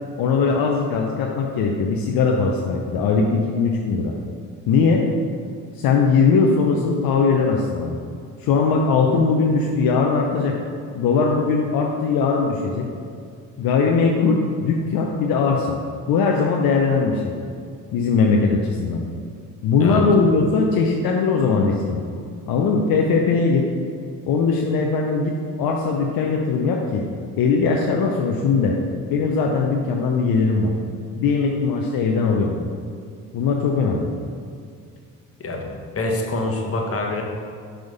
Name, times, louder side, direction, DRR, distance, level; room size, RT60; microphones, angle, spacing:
voice 1, 0.2-4.1 4.7-5.1 5.8-8.0 8.4-10.6 10.9-12.9 13.6-15.8 16.1-17.3 17.9-19.0 19.6-22.0 22.5-23.7 24.3-27.0 27.4-28.8 29.1-30.7 31.2-32.7 33.3-34.1, left 4 dB, 65° left, 0 dB, 0.7 m, -20 dB
voice 2, 35.4-37.2, left 2 dB, 35° left, 1 dB, 1.2 m, -26 dB
5.9 x 3.6 x 5.2 m, 2.3 s
supercardioid pair, 65°, 38 cm